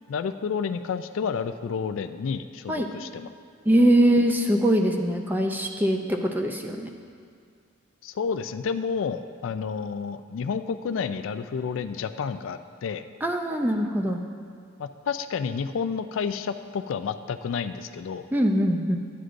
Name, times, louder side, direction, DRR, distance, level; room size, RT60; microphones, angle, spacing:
voice 1, 0.1-3.3 8.0-13.1 14.8-18.3, left 6 dB, 70° left, 10 dB, 0.3 m, -30 dB
voice 2, 3.7-6.9 13.2-14.2 18.3-19.0, right 1 dB, 10° right, 3 dB, 0.4 m, -22 dB
12.5 x 9.4 x 2.5 m, 2.2 s
head